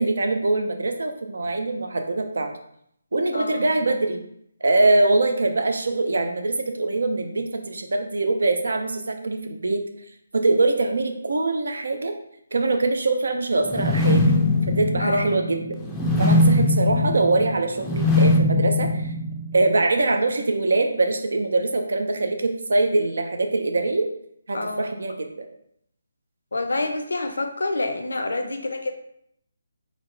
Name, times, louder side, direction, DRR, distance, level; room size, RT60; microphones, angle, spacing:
voice 1, 0.0-2.5 3.1-4.2 4.6-9.8 10.3-12.1 12.5-14.2 14.8-15.8 16.2-19.1 19.5-24.1 24.5-25.5, right 2 dB, 75° right, 5 dB, 0.7 m, -23 dB
voice 2, 3.3-3.7 15.0-15.4 24.5-25.0 26.5-28.9, left 2 dB, 80° left, 6 dB, 0.7 m, -27 dB
sound 1, 13.6-19.7, left 2 dB, 10° left, 0.5 m, -21 dB
4.1 x 3.5 x 3.2 m, 0.72 s
figure-of-eight pair, 155°, 0 cm